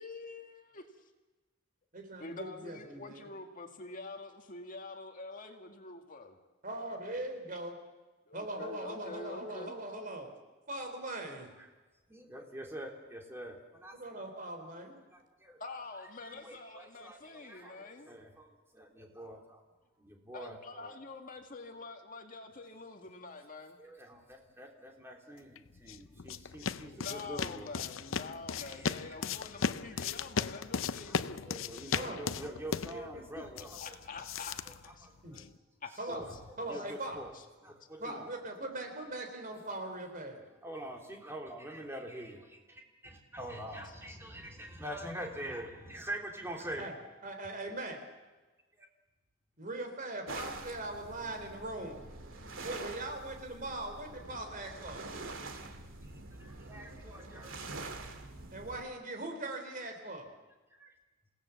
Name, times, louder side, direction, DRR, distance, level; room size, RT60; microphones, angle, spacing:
voice 1, 0.0-0.9 2.2-6.4 8.3-9.8 15.6-18.1 20.3-23.8 27.0-31.4 33.4-35.1 35.4-35.5 35.8-36.0, left 3 dB, 45° left, 4 dB, 2.0 m, -46 dB
voice 2, 1.9-3.3 6.6-7.8 8.3-10.3 10.7-11.5 13.9-15.0 31.9-32.2 35.2-35.4 36.0-36.3 36.6-37.2 38.0-40.4 46.8-46.9 47.2-48.0 49.6-52.0 52.6-55.0 58.5-60.3, right 2 dB, 45° right, 5 dB, 4.0 m, -40 dB
voice 3, 12.1-14.1 14.6-14.7 15.1-15.6 16.2-19.6 20.0-21.0 23.8-27.7 28.5-30.1 31.0-33.9 34.7-35.4 36.1-36.3 36.6-37.3 37.6-38.3 40.6-46.8 48.8-48.9 56.0-56.1 56.4-57.7 60.8-60.9, right 1 dB, 15° right, 1 dB, 3.4 m, -45 dB
sound 1, 25.6-35.6, left 6 dB, 90° left, 0.7 m, -37 dB
sound 2, 50.3-58.8, right 3 dB, 80° right, 2.4 m, -45 dB
28.5 x 17.5 x 7.2 m, 1.2 s
head